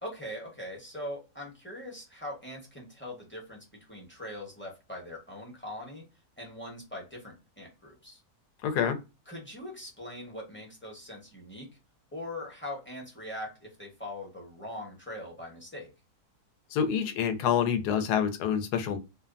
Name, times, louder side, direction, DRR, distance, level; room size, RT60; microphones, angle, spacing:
voice 1, 0.0-6.0 6.4-8.2 9.3-11.7 12.1-15.9, left 1 dB, 10° left, -2 dB, 0.6 m, -41 dB
voice 2, 8.6-9.0 16.7-19.0, left 8 dB, 90° left, 8 dB, 1.2 m, -27 dB
2.7 x 2.2 x 2.3 m, 0.27 s
omnidirectional pair, 1.7 m